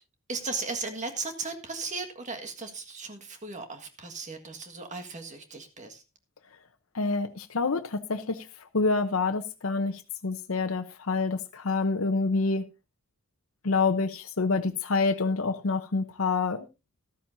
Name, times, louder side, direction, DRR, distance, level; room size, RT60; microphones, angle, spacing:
voice 1, 0.3-6.0, right 4 dB, 35° right, 1.7 m, -36 dB
voice 2, 6.9-8.5 8.7-12.6 13.6-16.7, left 4 dB, 80° left, 0.9 m, -27 dB
13.5 x 12.5 x 2.7 m
head